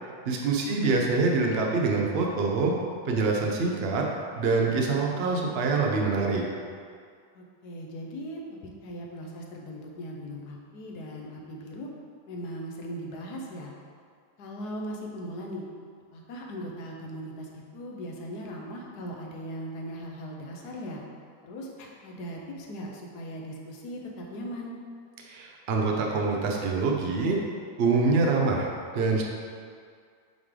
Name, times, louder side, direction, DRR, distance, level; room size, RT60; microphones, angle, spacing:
voice 1, 0.3-2.7 3.0-4.1 4.4-6.4 25.2-27.4 27.8-28.7 28.9-29.2, right 3 dB, 70° right, 0 dB, 0.5 m, -25 dB
voice 2, 7.3-8.4 8.8-11.9 12.3-13.7 14.4-15.6 16.1-21.0 21.4-24.7, equal, 65° left, -1 dB, 1.2 m, -39 dB
7.7 x 3.3 x 3.7 m, 2.2 s
omnidirectional pair, 1.9 m